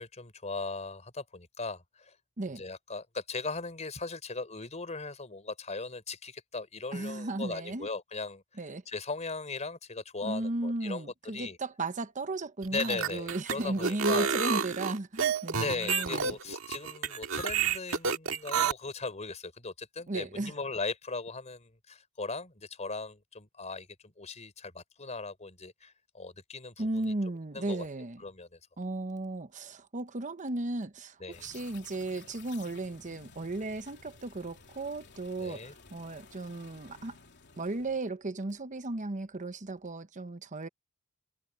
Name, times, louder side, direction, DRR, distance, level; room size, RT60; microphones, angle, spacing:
voice 1, 0.0-2.1 2.6-8.4 8.9-11.1 11.3-11.6 12.7-14.4 15.6-27.1 27.5-27.9 28.2-28.5 31.2-31.5 35.4-35.7, left 3 dB, 35° left, 4.2 m, -38 dB
voice 2, 6.9-7.9 8.6-8.8 10.2-16.4 20.1-20.5 26.8-28.2 28.8-37.2 37.6-40.7, right 2 dB, 35° right, 1.0 m, -35 dB
sound 1, 12.6-18.7, right 6 dB, 70° right, 2.0 m, -29 dB
sound 2, 31.3-38.0, left 5 dB, 55° left, 3.2 m, -54 dB
head